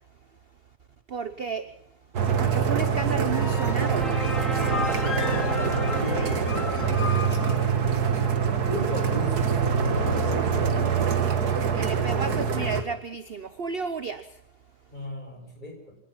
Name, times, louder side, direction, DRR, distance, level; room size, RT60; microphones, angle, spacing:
voice 1, 1.1-1.7 2.2-4.1 6.1-6.3 11.7-14.4, right 6 dB, 40° right, 11 dB, 1.0 m, -32 dB
sound 1, 2.1-12.8, right 6 dB, 65° right, 2.1 m, -24 dB
sound 2, 3.0-8.7, left 1 dB, ahead, 1.0 m, -37 dB
sound 3, 3.3-7.6, left 6 dB, 45° left, 1.1 m, -36 dB
voice 2, 4.6-7.4 8.6-10.5 14.9-16.0, left 1 dB, 25° left, 2 dB, 6.6 m, -37 dB
25.0 x 19.0 x 5.9 m, 0.70 s
omnidirectional pair, 1.8 m